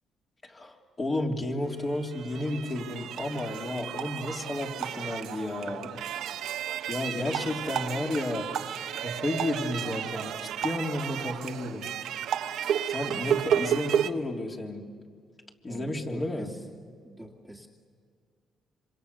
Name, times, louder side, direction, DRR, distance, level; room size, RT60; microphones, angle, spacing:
voice 1, 0.4-5.9 6.9-8.5 8.9-11.9 12.8-14.9 15.6-16.5, left 1 dB, 30° left, 0 dB, 3.4 m, -32 dB
sound 1, 1.8-14.1, right 9 dB, 80° right, 1.0 m, -32 dB
voice 2, 15.7-16.6 17.0-17.7, right 1 dB, ahead, 1 dB, 2.1 m, -44 dB
27.0 x 26.0 x 7.0 m, 2.2 s
cardioid pair, 90°, 0 cm